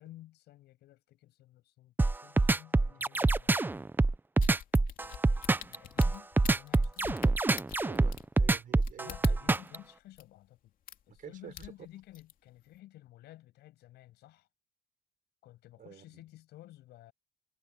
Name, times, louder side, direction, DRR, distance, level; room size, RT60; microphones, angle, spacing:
voice 1, 0.0-3.8 5.0-7.2 9.0-10.7 11.1-14.5 15.4-17.1, left 15 dB, 75° left, 7.8 m, -54 dB
sound 1, 2.0-9.8, right 3 dB, 10° right, 0.6 m, -25 dB
sound 2, 4.4-9.7 10.2-10.3 10.9-11.2 11.5-12.3 12.7-12.8, left 9 dB, 55° left, 2.6 m, -45 dB
voice 2, 7.8-9.4 11.1-11.7 15.8-16.2, right 9 dB, 55° right, 6.6 m, -49 dB
cardioid pair, 110°, 17 cm